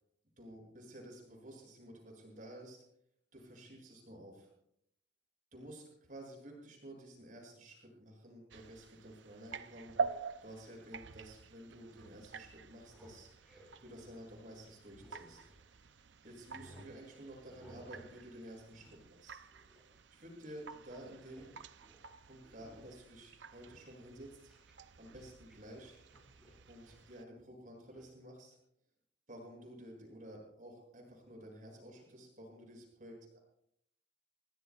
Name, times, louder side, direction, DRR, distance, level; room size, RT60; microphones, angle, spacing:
voice 1, 0.4-2.8 3.3-4.5 5.5-10.0 10.4-13.3 13.8-15.5 16.2-19.4 20.1-21.5 22.2-24.5 25.0-26.0 26.7-28.6 29.3-33.4, right 1 dB, 45° right, 0 dB, 7.6 m, -52 dB
sound 1, 8.5-27.2, right 5 dB, 70° right, 0.6 m, -47 dB
sound 2, 12.8-15.9 16.3-16.9 17.5-18.1 18.4-20.8 21.1-21.5 21.8-22.0 22.4-23.1 23.4-25.6 25.8-27.1 27.9-28.1, equal, 5° right, 6.8 m, -61 dB
29.0 x 19.0 x 2.5 m, 0.74 s
head